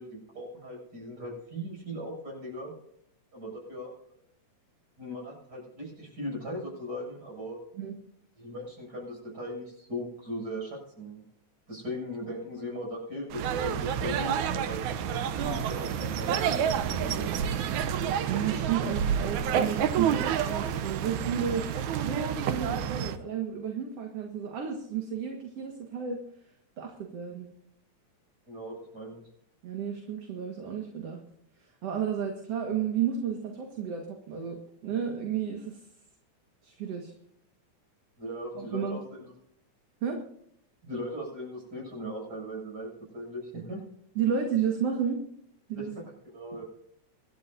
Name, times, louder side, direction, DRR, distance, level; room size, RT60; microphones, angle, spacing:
voice 1, 0.0-2.7 3.3-3.9 5.0-7.6 8.4-11.2 11.7-17.3 28.5-29.3 38.2-39.3 40.8-43.8 45.8-46.6, equal, 30° right, -1 dB, 8.1 m, -39 dB
sound 1, 13.3-23.2, right 8 dB, 80° right, 2.3 m, -29 dB
voice 2, 18.0-21.6 21.9-26.2 26.8-27.5 29.6-31.2 31.8-35.8 36.6-37.1 38.6-39.0 40.0-40.2 44.2-45.2 45.7-45.9, right 7 dB, 55° right, 2 dB, 2.6 m, -32 dB
25.5 x 12.5 x 2.7 m, 0.72 s
omnidirectional pair, 3.4 m